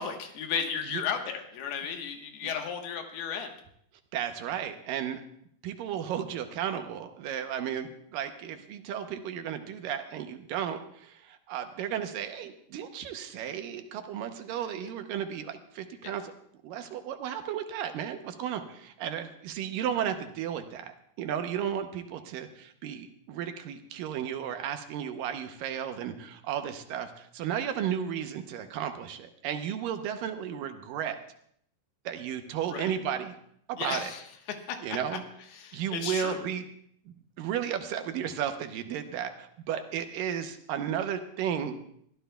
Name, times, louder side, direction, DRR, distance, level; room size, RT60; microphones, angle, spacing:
voice 1, 0.0-3.5 14.8-14.9 16.0-16.1 32.7-33.0 33.8-34.2 34.7-35.0 35.5-36.4, left 7 dB, 90° left, 4 dB, 3.2 m, -34 dB
voice 2, 4.1-5.2 5.6-16.3 16.6-31.2 32.1-33.3 33.7-34.1 34.8-35.2 35.7-36.6 37.4-41.8, right 9 dB, 75° right, 7 dB, 2.3 m, -34 dB
23.5 x 14.5 x 2.3 m, 0.68 s
omnidirectional pair, 4.4 m